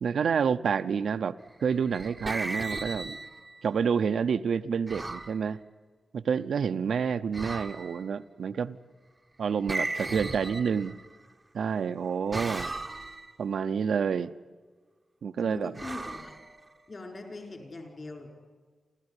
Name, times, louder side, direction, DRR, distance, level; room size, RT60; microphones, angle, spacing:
voice 1, 0.0-3.2 3.6-5.6 6.1-8.8 9.4-11.0 11.5-12.7 13.4-14.3 15.2-15.7, right 6 dB, 75° right, 10 dB, 0.6 m, -28 dB
sound 1, 1.6-3.6 4.9-5.4 7.3-8.1 9.7-11.2 12.3-13.3 15.8-17.0, right 2 dB, 15° right, 0.8 m, -36 dB
voice 2, 15.4-16.4 16.9-18.3, left 2 dB, 35° left, 4 dB, 4.7 m, -42 dB
30.0 x 13.0 x 9.8 m, 1.4 s
wide cardioid pair, 150°, 0 cm